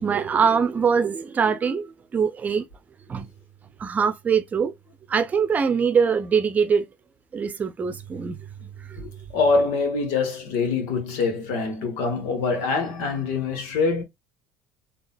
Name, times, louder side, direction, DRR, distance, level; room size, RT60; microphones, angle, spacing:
voice 1, 0.0-2.7 3.1-3.3 3.8-4.7 5.1-6.9 7.3-8.4 8.8-9.0, right 6 dB, 30° right, 0.7 m, -23 dB
voice 2, 9.0-14.0, left 4 dB, 70° left, 1.4 m, -24 dB
3.9 x 2.4 x 2.3 m
hypercardioid pair, 75°, 5 cm